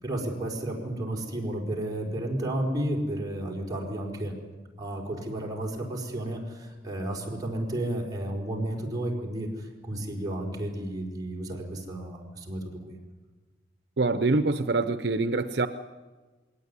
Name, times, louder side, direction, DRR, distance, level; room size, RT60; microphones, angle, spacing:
voice 1, 0.0-4.4 4.8-13.0, right 1 dB, 20° right, -1 dB, 4.6 m, -32 dB
voice 2, 14.0-15.7, right 3 dB, 65° right, 10 dB, 0.7 m, -25 dB
22.0 x 18.5 x 9.8 m, 1.3 s
head